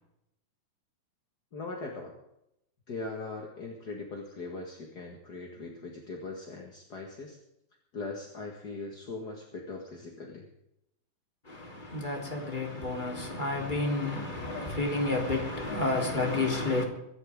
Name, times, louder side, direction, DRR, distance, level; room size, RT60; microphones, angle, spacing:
voice 1, 1.5-2.1 2.9-7.4 7.9-10.5, left 3 dB, 40° left, 1.5 m, -40 dB
voice 2, 11.5-16.8, left 2 dB, 15° left, 3.5 m, -30 dB
24.0 x 12.5 x 3.7 m
omnidirectional pair, 4.2 m